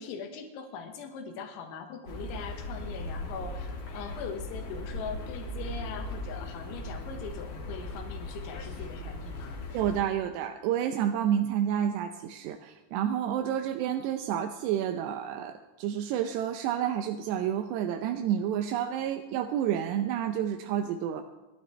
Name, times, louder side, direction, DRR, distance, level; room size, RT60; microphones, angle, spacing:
voice 1, 0.0-9.6, left 6 dB, 80° left, 4 dB, 3.8 m, -41 dB
sound 1, 2.1-10.0, left 1 dB, 50° left, 3.3 m, -38 dB
voice 2, 9.7-21.2, right 10 dB, 80° right, 6 dB, 2.5 m, -29 dB
26.0 x 12.0 x 3.3 m, 1.1 s
omnidirectional pair, 5.5 m